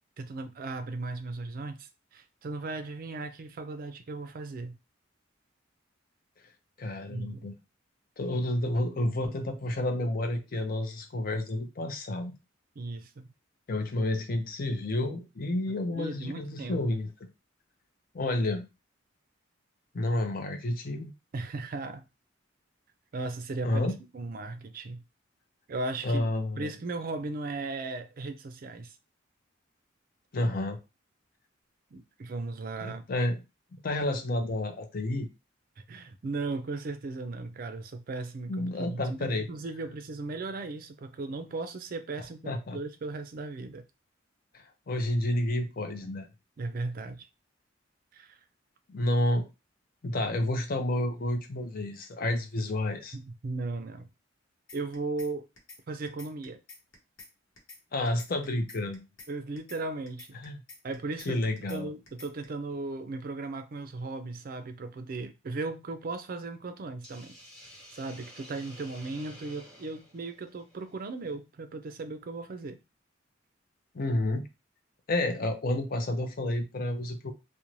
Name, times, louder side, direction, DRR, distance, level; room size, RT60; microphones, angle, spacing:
voice 1, 0.2-4.8 7.1-7.5 12.8-13.3 15.9-17.0 21.3-22.0 23.1-25.0 25.7-26.3 26.6-29.0 31.9-33.0 35.9-43.9 46.6-47.3 48.1-48.4 53.1-54.1 54.7-55.5 55.9-56.6 59.3-60.3 60.8-61.4 61.7-67.4 67.9-72.8, right 3 dB, 45° right, 0.4 m, -37 dB
voice 2, 6.8-7.5 8.2-12.3 13.7-17.1 18.1-18.6 19.9-21.1 23.6-24.0 26.0-26.7 30.3-30.8 32.8-33.4 33.7-35.3 38.5-39.5 42.5-42.8 44.5-46.3 48.9-49.5 50.0-53.2 57.9-59.0 60.3-60.6 61.3-61.9 73.9-74.5 75.1-77.3, left 1 dB, 45° left, 0.5 m, -30 dB
sound 1, 54.7-55.3 55.6-55.8 56.1-57.3 57.6-57.8 58.1-59.3 59.6-59.8 60.1-61.3 61.6-61.8 62.1-62.4, left 3 dB, 85° left, 0.9 m, -49 dB
Hiss, 67.0-71.3, equal, ahead, 1.0 m, -51 dB
2.5 x 2.1 x 3.0 m
head